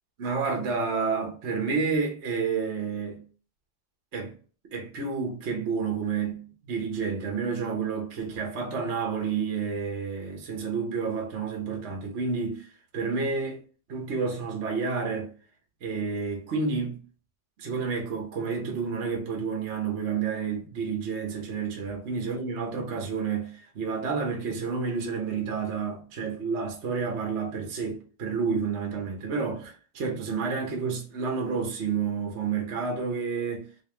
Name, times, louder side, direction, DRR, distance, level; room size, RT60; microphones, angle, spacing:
voice 1, 0.2-3.2 4.1-4.3 4.7-12.7 12.9-13.6 13.9-15.3 15.8-17.0 17.6-33.7, right 5 dB, 45° right, 1.1 m, -30 dB
4.1 x 3.1 x 3.1 m
omnidirectional pair, 2.1 m